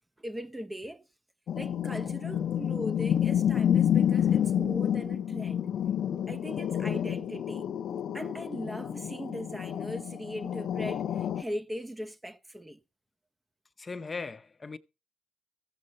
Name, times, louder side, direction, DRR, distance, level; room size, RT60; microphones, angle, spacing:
voice 1, 0.2-1.1 1.5-5.7 6.3-7.7 8.1-12.8, equal, 10° right, 0.8 m, -39 dB
sound 1, 1.5-11.4, left 9 dB, 65° left, 0.7 m, -29 dB
voice 2, 13.8-14.8, left 4 dB, 30° left, 0.8 m, -38 dB
15.0 x 7.9 x 4.1 m
cardioid pair, 90°, 0 cm